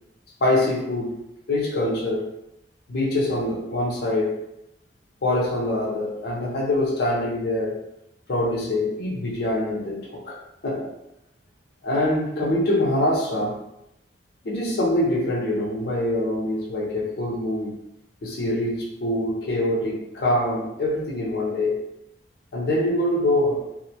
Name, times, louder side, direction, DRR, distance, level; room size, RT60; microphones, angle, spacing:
voice 1, 0.4-1.2 1.5-2.3 2.9-4.5 5.2-7.8 8.3-10.4 10.6-10.9 11.8-13.6 14.4-17.8 18.2-21.8 22.5-23.7, left 1 dB, 65° left, -1 dB, 0.5 m, -24 dB
2.4 x 2.1 x 2.7 m, 0.83 s
head